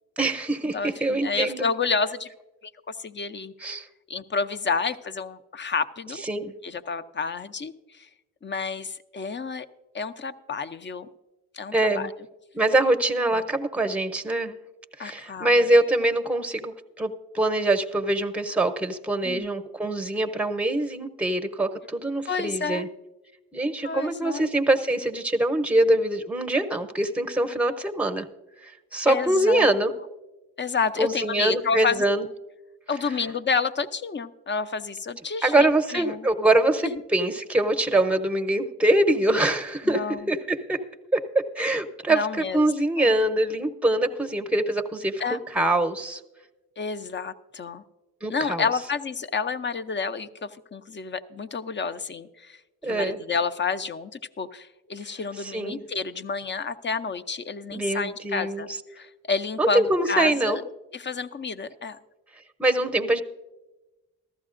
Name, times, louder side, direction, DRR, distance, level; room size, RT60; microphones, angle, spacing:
voice 1, 0.2-1.7 3.6-3.9 6.2-6.5 11.7-12.1 12.5-14.6 15.0-22.9 23.5-28.2 28.6-29.9 31.0-32.3 35.4-40.0 40.3-40.8 41.1-46.2 48.2-48.6 52.8-53.2 55.4-55.8 57.7-58.7 59.6-60.6 62.6-63.2, right 1 dB, 5° right, 7 dB, 0.8 m, -24 dB
voice 2, 0.7-2.3 2.6-3.8 4.1-6.2 6.6-8.1 8.4-9.7 9.9-11.1 11.5-12.1 13.3-13.4 15.0-15.7 19.2-19.5 22.3-22.9 23.8-24.5 29.1-29.7 30.6-32.0 32.9-36.3 36.8-37.0 39.9-40.3 42.1-42.7 43.0-43.1 45.2-45.4 46.8-47.8 48.3-52.6 52.8-60.6 60.9-62.0, left 5 dB, 30° left, 12 dB, 0.6 m, -30 dB
14.5 x 13.0 x 2.5 m, 1.1 s
supercardioid pair, 50°, 39 cm